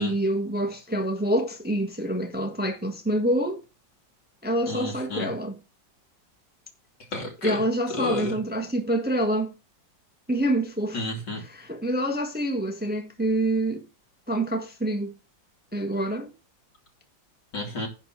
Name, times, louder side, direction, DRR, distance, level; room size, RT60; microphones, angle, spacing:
voice 1, 0.0-3.6 4.4-5.6 7.4-9.5 10.3-11.0 11.4-13.8 14.3-15.1 15.7-16.3, right 1 dB, 5° right, 1.2 m, -26 dB
voice 2, 4.7-5.3 7.1-7.6 7.9-8.3 10.9-11.4 17.5-17.9, left 2 dB, 60° left, 3.5 m, -31 dB
10.5 x 4.5 x 7.5 m
omnidirectional pair, 2.1 m